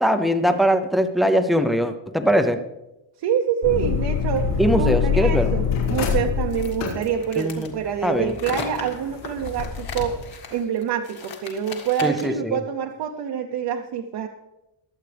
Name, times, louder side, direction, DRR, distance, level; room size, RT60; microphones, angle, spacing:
voice 1, 0.0-2.6 4.6-5.5 7.4-7.7 8.0-8.3 12.0-12.6, equal, ahead, 8 dB, 0.5 m, -21 dB
voice 2, 3.2-4.5 4.8-5.6 5.9-14.3, right 8 dB, 55° right, 3 dB, 0.8 m, -26 dB
sound 1, 3.6-10.3, left 7 dB, 75° left, 5.5 m, -25 dB
sound 2, 6.5-12.4, left 5 dB, 50° left, 2.0 m, -37 dB
22.5 x 8.1 x 3.4 m, 0.95 s
cardioid pair, 180°, 49 cm